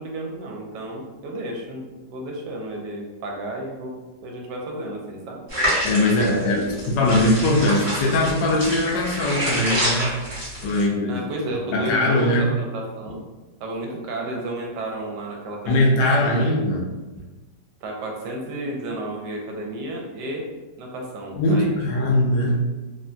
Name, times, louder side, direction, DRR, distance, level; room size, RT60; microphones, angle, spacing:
voice 1, 0.0-5.4 6.1-6.7 11.1-13.2 13.6-15.9 16.3-16.5 17.8-20.4 20.8-22.2, right 1 dB, 75° right, 0 dB, 1.2 m, -32 dB
sound 1, 5.5-10.8, equal, 25° right, 1.0 m, -27 dB
voice 2, 5.8-10.0 10.6-11.2 11.7-12.4 15.7-16.9 17.1-17.2 21.3-22.6, left 1 dB, 90° left, -1 dB, 1.3 m, -20 dB
3.4 x 2.1 x 2.5 m, 1.2 s
omnidirectional pair, 1.9 m